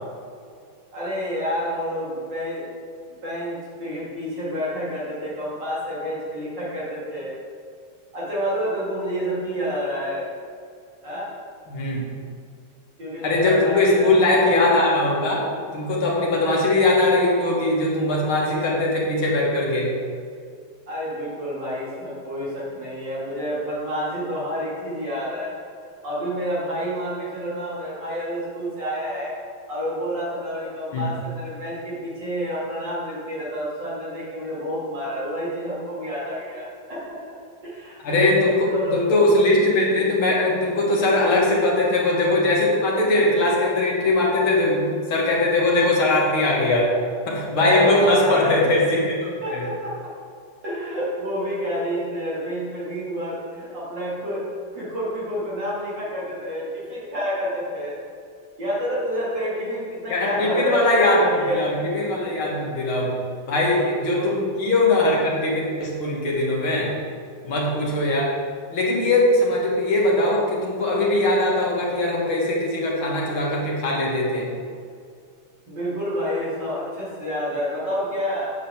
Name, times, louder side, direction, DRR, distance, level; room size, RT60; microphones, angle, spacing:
voice 1, 0.9-2.7 3.1-7.3 8.1-10.3 11.0-11.3 13.0-14.1 20.9-25.5 25.8-29.3 29.7-37.2 37.6-39.0 41.2-41.3 44.0-44.1 47.5-48.7 49.4-50.1 50.6-54.4 54.7-57.9 58.6-61.7 62.2-62.5 63.6-64.3 75.7-78.5, equal, 55° right, -9 dB, 2.9 m, -29 dB
voice 2, 11.7-12.1 13.2-19.9 30.9-31.1 38.0-46.9 47.3-49.7 60.1-63.1 63.5-66.9 67.4-68.4 68.7-74.5, left 2 dB, 70° left, -3 dB, 2.6 m, -21 dB
8.6 x 5.0 x 7.2 m, 2.3 s
omnidirectional pair, 2.4 m